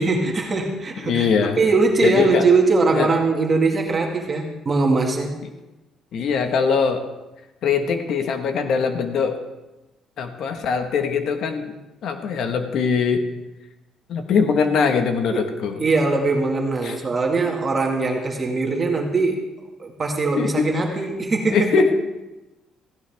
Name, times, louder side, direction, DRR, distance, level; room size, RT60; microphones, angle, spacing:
voice 1, 0.0-1.3 1.6-5.3 15.3-19.4 19.8-21.8, right 3 dB, 30° right, 1 dB, 2.0 m, -21 dB
voice 2, 1.0-1.6 2.0-2.4 2.9-3.1 6.1-7.0 7.6-9.4 10.2-11.7 12.0-13.2 14.1-15.8 16.8-17.0 20.4-20.7 21.5-21.9, left 6 dB, 60° left, 6 dB, 1.5 m, -21 dB
16.5 x 16.0 x 3.5 m, 1.0 s
cardioid pair, 135°, 0 cm